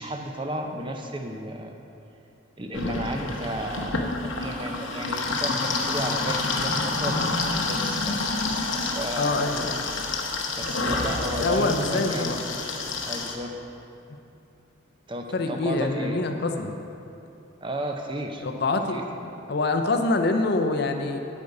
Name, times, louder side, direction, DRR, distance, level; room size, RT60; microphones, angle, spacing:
voice 1, 0.0-1.8 2.6-8.2 8.5-9.4 10.6-12.3 13.0-13.5 15.1-16.2 17.6-18.5 18.9-19.0, right 1 dB, 25° right, 3 dB, 0.6 m, -33 dB
sound 1, 2.7-13.3, left 3 dB, 70° left, 1.0 m, -28 dB
voice 2, 9.2-9.8 11.4-12.4 15.3-16.8 18.4-21.2, left 3 dB, 50° left, 5 dB, 0.6 m, -25 dB
8.4 x 8.2 x 5.4 m, 2.8 s
head